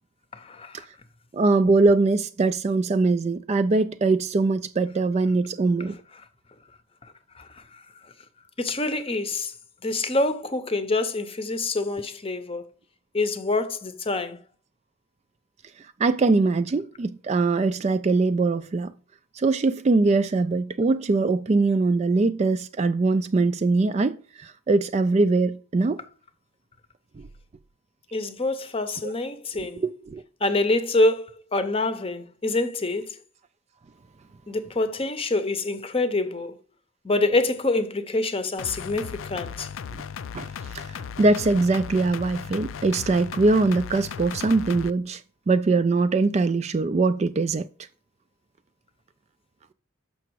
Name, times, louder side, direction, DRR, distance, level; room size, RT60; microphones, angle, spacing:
voice 1, 0.3-0.8 7.4-7.5 8.6-9.5 9.8-12.6 13.1-14.4 28.1-29.8 30.4-31.3 31.5-33.2 34.5-36.6 37.0-39.7, left 2 dB, 25° left, 0.7 m, -26 dB
voice 2, 1.3-6.0 16.0-18.9 19.3-26.0 27.2-27.3 29.0-29.1 29.5-30.2 39.9-40.0 40.3-40.5 40.7-45.2 45.5-47.7, right 3 dB, 30° right, 0.3 m, -22 dB
sound 1, 38.6-44.9, left 7 dB, 70° left, 0.4 m, -36 dB
7.0 x 5.8 x 4.6 m
head